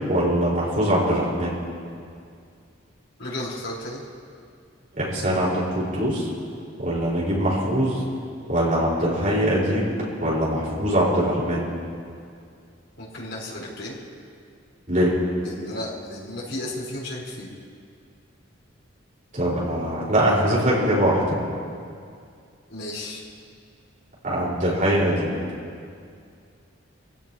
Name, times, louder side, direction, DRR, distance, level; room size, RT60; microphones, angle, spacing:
voice 1, 0.1-1.6 4.9-6.3 6.8-8.0 8.5-9.9 10.2-11.7 14.9-15.1 19.3-21.2 24.2-25.3, equal, 40° right, -6 dB, 5.1 m, -22 dB
voice 2, 3.2-4.0 13.0-14.0 15.4-17.5 22.7-23.2, left 1 dB, 70° left, -6 dB, 4.7 m, -33 dB
26.0 x 16.5 x 3.1 m, 2.3 s
head